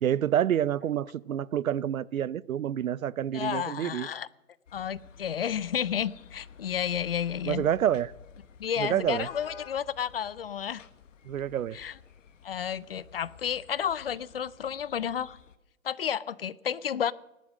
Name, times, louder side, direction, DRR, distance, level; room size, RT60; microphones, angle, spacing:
voice 1, 0.0-4.1 7.5-8.1 8.8-9.3 11.3-11.8, right 10 dB, 90° right, 0.7 m, -28 dB
voice 2, 3.3-4.3 4.7-7.7 8.6-10.8 11.7-11.9 12.4-15.4 15.8-17.1, left 8 dB, 45° left, 0.5 m, -31 dB
sound 1, 4.7-15.6, left 6 dB, 65° left, 1.4 m, -51 dB
19.0 x 12.0 x 6.4 m
hypercardioid pair, 165°, 40 cm